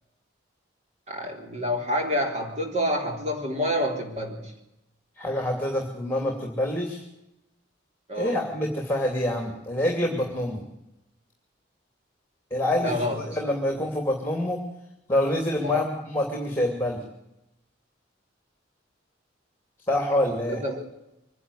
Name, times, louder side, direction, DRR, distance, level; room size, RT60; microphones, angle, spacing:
voice 1, 1.1-4.5 8.1-8.5 12.8-13.8 15.6-15.9 20.5-20.9, left 1 dB, 35° right, 2 dB, 3.5 m, -28 dB
voice 2, 5.2-7.0 8.1-10.6 12.5-14.6 15.1-17.0 19.9-20.6, left 1 dB, 10° left, 2 dB, 2.8 m, -26 dB
24.0 x 11.0 x 9.9 m, 0.88 s
head